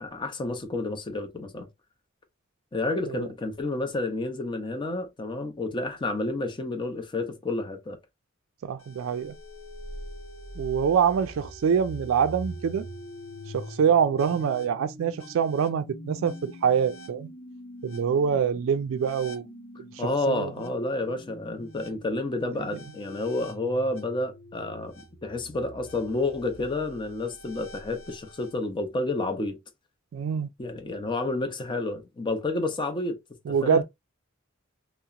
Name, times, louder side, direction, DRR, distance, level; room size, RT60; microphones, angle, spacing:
voice 1, 0.0-1.7 2.7-8.0 18.3-18.4 20.0-29.6 30.6-33.2 33.6-33.8, left 2 dB, 25° left, 0.5 m, -30 dB
voice 2, 8.6-9.4 10.6-12.9 13.5-17.3 17.8-19.5 19.8-20.5 22.5-22.8 30.1-30.5 33.5-33.8, right 7 dB, 65° right, 0.3 m, -25 dB
sound 1, 8.8-28.5, equal, 65° left, 1.1 m, -44 dB
2.8 x 2.0 x 2.3 m
head